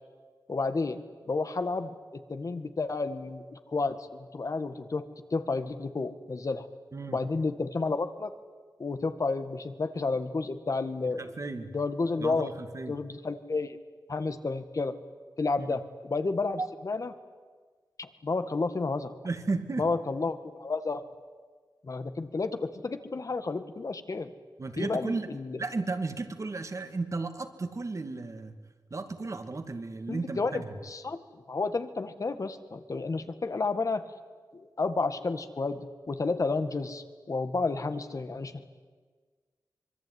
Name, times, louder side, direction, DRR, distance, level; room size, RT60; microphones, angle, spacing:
voice 1, 0.5-1.0 1.3-6.7 7.1-8.3 8.8-11.3 11.7-12.5 12.9-13.8 14.1-15.0 15.4-17.1 18.0-19.1 19.8-21.0 21.8-24.3 24.8-25.6 30.1-31.2 31.5-34.1 34.5-38.6, left 3 dB, 50° left, 10 dB, 1.9 m, -31 dB
voice 2, 11.0-11.7 12.2-13.0 15.6-15.8 16.6-16.7 19.2-19.9 24.6-25.3 25.6-28.5 28.9-30.7, right 3 dB, 45° right, 8 dB, 2.4 m, -34 dB
25.0 x 23.0 x 9.7 m, 1.5 s
wide cardioid pair, 85°, 7 cm